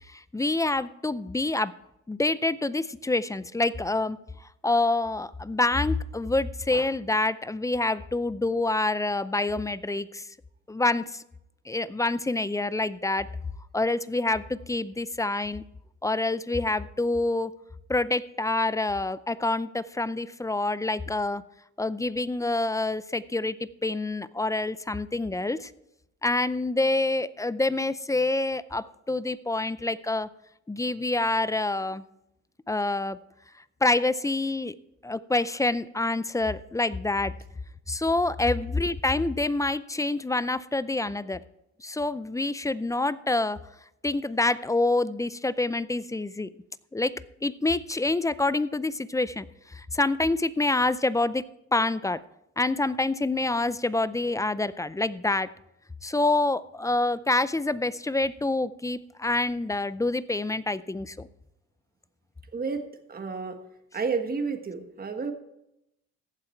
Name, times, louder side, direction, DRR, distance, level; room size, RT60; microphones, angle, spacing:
voice 1, 0.1-1.7 2.1-4.2 4.6-10.3 10.7-11.2 11.7-13.3 13.7-15.6 16.0-17.5 17.9-21.4 21.8-25.7 26.2-30.3 30.7-32.0 32.7-33.2 33.8-34.8 35.0-37.3 37.9-41.4 41.8-43.6 44.0-46.5 46.9-47.1 47.4-51.4 51.7-52.2 52.6-55.5 56.0-61.3, left 2 dB, 10° left, 17 dB, 0.4 m, -27 dB
voice 2, 62.5-62.8 63.1-63.6 63.9-65.3, right 5 dB, 30° right, 6 dB, 1.5 m, -30 dB
15.0 x 8.8 x 4.5 m, 0.84 s
cardioid pair, 90°, 30 cm